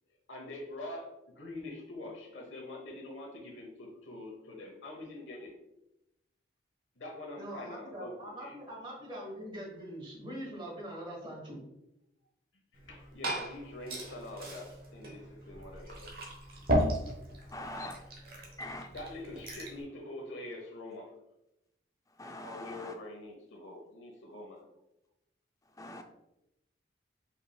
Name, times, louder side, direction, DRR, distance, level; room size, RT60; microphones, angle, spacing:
voice 1, 0.3-5.6 7.0-8.6 12.5-16.4 16.6-16.7 18.4-18.6 18.9-21.1 22.4-24.7, left 1 dB, 85° left, 1 dB, 1.0 m, -45 dB
voice 2, 7.4-11.6, equal, 25° right, -1 dB, 1.3 m, -43 dB
Liquid, 12.7-19.8, equal, 50° right, 1.1 m, -36 dB
voice 3, 17.5-18.0 18.6-18.9 22.1-23.0 25.7-26.0, left 1 dB, 15° left, 5 dB, 0.3 m, -43 dB
5.1 x 4.2 x 2.3 m, 0.88 s
head